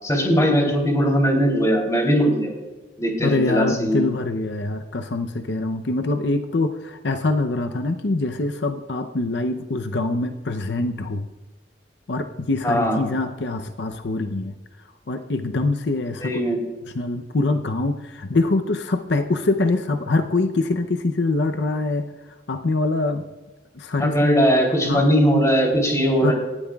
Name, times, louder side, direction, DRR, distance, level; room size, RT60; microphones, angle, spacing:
voice 1, 0.0-2.5 3.0-4.0 12.6-13.0 16.2-16.6 24.0-26.3, equal, 20° left, 0 dB, 3.1 m, -19 dB
voice 2, 3.2-11.3 12.1-14.5 15.1-16.4 16.9-22.1 22.5-23.2 23.7-24.3 24.9-25.1 26.2-26.3, left 2 dB, 75° left, 7 dB, 0.7 m, -24 dB
18.5 x 12.0 x 2.3 m, 1.2 s
head